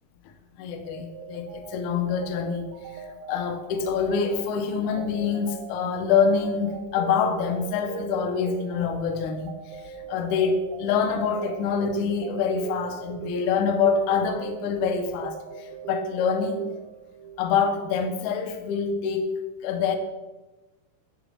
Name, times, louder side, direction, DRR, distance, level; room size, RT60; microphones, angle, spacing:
voice 1, 0.6-16.7 17.4-20.0, left 6 dB, 80° left, 6 dB, 2.1 m, -26 dB
sound 1, 0.9-17.5, right 7 dB, 80° right, 2.0 m, -39 dB
10.0 x 4.0 x 6.3 m, 1.1 s
omnidirectional pair, 3.5 m